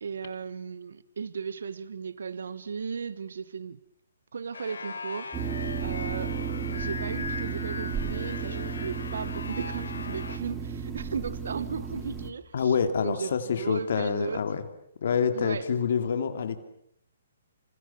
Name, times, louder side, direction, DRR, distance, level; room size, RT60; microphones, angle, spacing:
voice 1, 0.0-3.8 4.3-6.4 6.7-14.4 15.3-15.7, right 6 dB, 75° right, 1.3 m, -36 dB
sound 1, 4.5-10.4, left 4 dB, 80° left, 3.6 m, -39 dB
sound 2, 5.3-12.3, right 7 dB, 15° right, 3.1 m, -34 dB
voice 2, 12.5-14.6 15.0-16.6, left 6 dB, 60° left, 2.7 m, -27 dB
28.5 x 27.0 x 7.1 m
hypercardioid pair, 150°, 0 cm